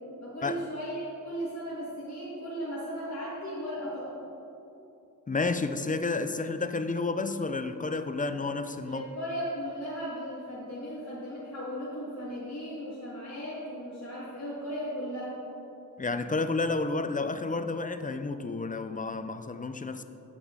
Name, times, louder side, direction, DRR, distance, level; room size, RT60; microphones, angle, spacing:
voice 1, 0.2-4.2 8.8-15.3, equal, 50° left, -9 dB, 1.7 m, -36 dB
voice 2, 5.3-9.0 16.0-20.0, left 3 dB, 25° left, 10 dB, 0.4 m, -31 dB
9.8 x 6.0 x 3.7 m, 2.9 s
wide cardioid pair, 65°, 34 cm